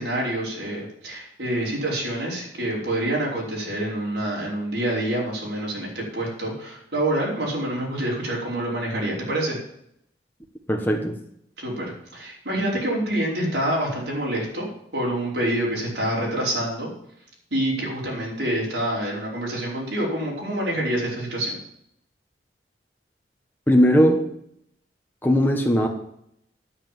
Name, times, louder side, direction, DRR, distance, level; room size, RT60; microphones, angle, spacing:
voice 1, 0.0-9.6 11.6-14.7 14.9-16.9 17.5-21.5, right 1 dB, 75° right, -4 dB, 5.0 m, -27 dB
voice 2, 10.7-11.2 23.7-24.3 25.2-25.9, equal, 10° left, 1 dB, 1.2 m, -18 dB
10.0 x 8.3 x 7.5 m, 0.72 s
head